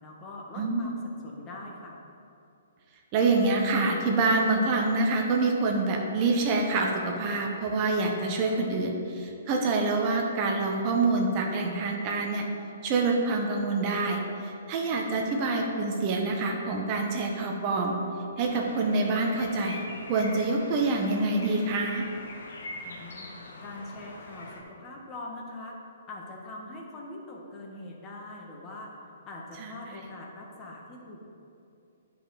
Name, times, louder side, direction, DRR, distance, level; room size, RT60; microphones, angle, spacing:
voice 1, 0.0-2.0 22.8-23.3 23.6-25.8 26.1-31.2, left 2 dB, 25° left, -2 dB, 1.5 m, -43 dB
voice 2, 0.6-0.9 3.1-12.5 12.8-18.0 18.4-22.1 29.6-29.7, right 3 dB, 35° right, 1 dB, 1.1 m, -26 dB
sound 1, 18.4-24.6, left 2 dB, 65° left, 1.4 m, -43 dB
9.7 x 5.2 x 4.9 m, 2.7 s
figure-of-eight pair, 125°, 0 cm